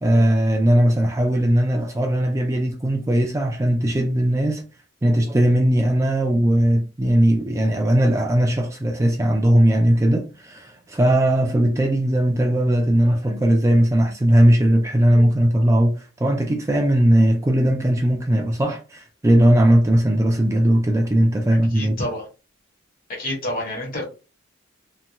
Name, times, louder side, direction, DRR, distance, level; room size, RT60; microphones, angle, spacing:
voice 1, 0.0-4.6 5.0-15.9 16.2-22.0, right 1 dB, 15° right, 0.4 m, -18 dB
voice 2, 21.7-22.2 23.2-24.0, left 1 dB, 45° left, 1.4 m, -28 dB
2.9 x 2.6 x 2.2 m
head